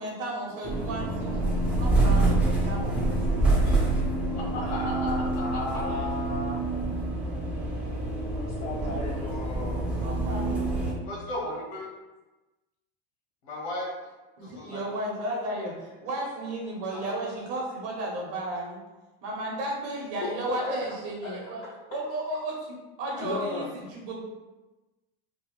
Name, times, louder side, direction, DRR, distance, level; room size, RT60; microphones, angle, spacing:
voice 1, 0.0-3.5 4.3-4.8 5.8-6.2 9.9-11.0 14.4-18.8 19.2-21.6 21.9-24.2, right 1 dB, 45° right, -2 dB, 0.9 m, -34 dB
sound 1, 0.6-10.9, right 2 dB, 5° right, 0.5 m, -26 dB
voice 2, 4.6-6.6 8.2-9.9 20.2-20.8 21.2-21.4 23.2-23.7, left 3 dB, 50° left, -4 dB, 0.5 m, -35 dB
voice 3, 10.3-10.6 11.0-11.8 13.4-13.9 14.4-14.8 20.6-20.7 23.2-23.4, left 1 dB, 80° left, -4 dB, 1.4 m, -36 dB
3.0 x 2.0 x 3.0 m, 1.1 s
supercardioid pair, 135°, 32 cm